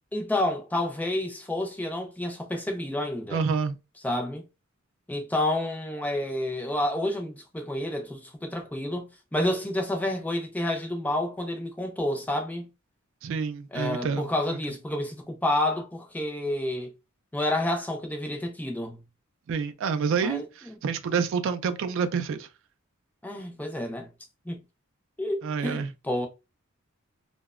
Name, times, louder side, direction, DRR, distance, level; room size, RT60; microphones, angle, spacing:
voice 1, 0.1-3.4 4.0-4.4 5.1-12.7 13.7-16.9 17.3-19.0 20.2-20.4 23.2-24.1 24.5-24.6 25.2-26.3, left 1 dB, 10° left, 0.4 m, -29 dB
voice 2, 3.3-3.8 13.2-14.3 19.5-22.5 25.4-25.9, right 6 dB, 60° right, 0.3 m, -28 dB
2.8 x 2.1 x 2.3 m
head